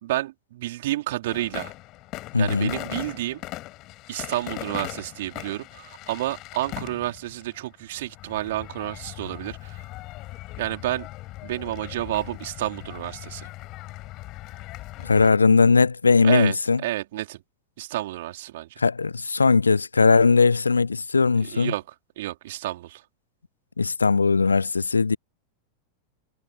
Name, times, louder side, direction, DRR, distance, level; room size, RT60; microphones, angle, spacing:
voice 1, 0.0-1.7 2.4-3.4 4.1-9.8 10.6-11.1 11.4-13.5 16.2-16.6 16.8-17.4 17.8-18.8 21.4-21.8 22.2-23.0, right 16 dB, 55° right, 4.4 m, -30 dB
sound 1, 1.3-15.3, left 18 dB, 40° left, 5.2 m, -39 dB
voice 2, 2.3-2.7 15.0-16.8 18.8-21.7 23.8-25.2, left 4 dB, 75° left, 0.6 m, -19 dB
figure-of-eight pair, 90°, 0 cm